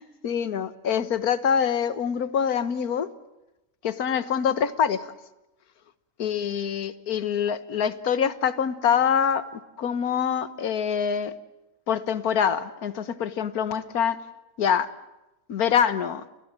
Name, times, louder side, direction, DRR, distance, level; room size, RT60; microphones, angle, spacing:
voice 1, 0.0-3.1 3.8-5.0 6.2-9.5 9.8-11.3 11.9-14.2 14.6-14.9 15.5-16.2, left 7 dB, 80° left, 13 dB, 1.6 m, -25 dB
29.5 x 22.5 x 7.5 m, 0.96 s
omnidirectional pair, 1.6 m